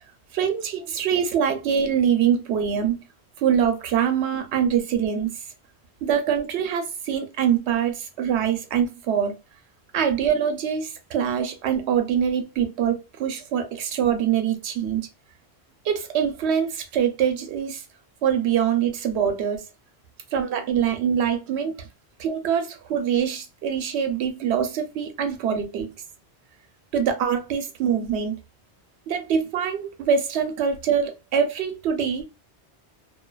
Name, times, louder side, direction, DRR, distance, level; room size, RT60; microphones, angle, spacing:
voice 1, 0.3-3.0 3.4-5.3 6.0-9.3 9.9-15.1 15.8-17.8 18.2-19.6 20.3-21.8 22.2-25.9 26.9-28.3 29.1-32.2, right 8 dB, 80° right, 0.9 m, -24 dB
2.5 x 2.3 x 2.3 m
omnidirectional pair, 1.1 m